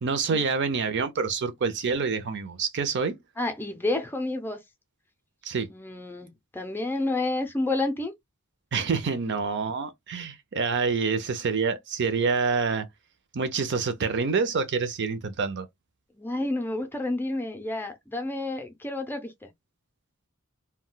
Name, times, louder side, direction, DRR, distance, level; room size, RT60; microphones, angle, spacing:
voice 1, 0.0-3.2 5.4-5.7 8.7-12.9 13.3-15.7, right 5 dB, 55° right, 0.5 m, -27 dB
voice 2, 3.4-4.6 5.7-8.1 16.2-19.5, left 2 dB, 10° left, 0.5 m, -30 dB
2.2 x 2.2 x 3.7 m
head